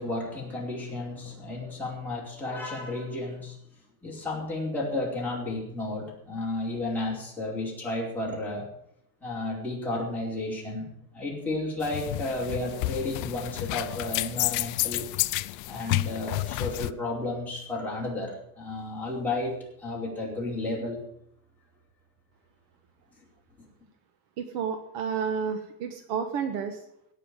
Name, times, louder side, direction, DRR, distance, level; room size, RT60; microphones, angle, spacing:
voice 1, 0.0-3.5 4.0-8.7 9.2-10.9 11.1-15.1 15.7-21.0, left 2 dB, 5° left, -6 dB, 4.6 m, -32 dB
sound 1, 11.8-16.9, left 20 dB, 45° left, 0.4 m, -30 dB
voice 2, 24.4-26.8, right 6 dB, 50° right, 7 dB, 1.5 m, -31 dB
17.0 x 5.9 x 9.0 m, 0.72 s
cardioid pair, 155°, 48 cm